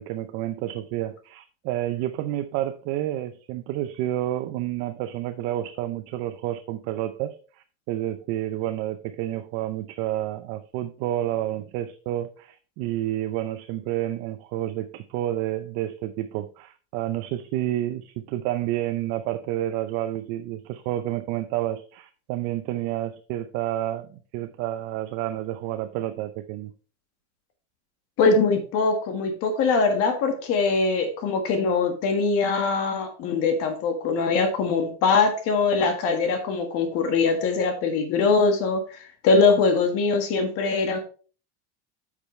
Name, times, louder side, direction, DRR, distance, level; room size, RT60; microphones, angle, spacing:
voice 1, 0.0-26.7, right 13 dB, 45° right, 9 dB, 0.6 m, -30 dB
voice 2, 28.2-41.0, left 4 dB, 45° left, 5 dB, 1.6 m, -22 dB
8.3 x 6.7 x 3.2 m, 0.38 s
supercardioid pair, 160°, 33 cm